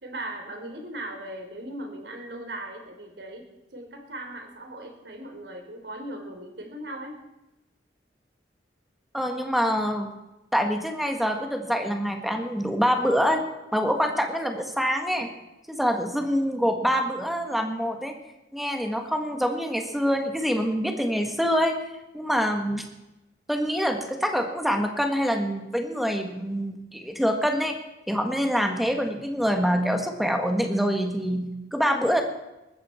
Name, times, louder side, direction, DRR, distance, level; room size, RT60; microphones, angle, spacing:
voice 1, 0.0-3.4 3.7-7.2, right 1 dB, 70° right, 3 dB, 3.6 m, -38 dB
voice 2, 9.1-10.1 10.5-13.4 13.7-15.3 15.7-18.1 18.5-21.8 22.1-22.8 23.5-27.8 28.1-32.2, equal, ahead, 4 dB, 1.8 m, -25 dB
19.5 x 14.0 x 4.4 m, 0.94 s
head